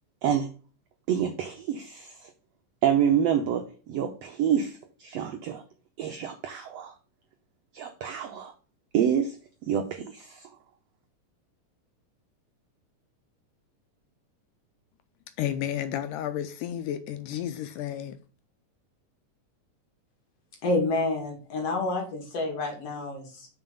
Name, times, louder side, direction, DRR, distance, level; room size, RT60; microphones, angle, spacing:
voice 1, 1.1-2.3 2.8-5.6 6.0-6.9 7.7-8.5 8.9-9.3 9.6-10.5, right 8 dB, 85° right, 1.4 m, -27 dB
voice 2, 15.4-18.2, left 10 dB, 80° left, 2.0 m, -32 dB
voice 3, 20.6-23.5, left 2 dB, 50° left, 2.7 m, -28 dB
6.0 x 4.7 x 5.1 m
omnidirectional pair, 3.9 m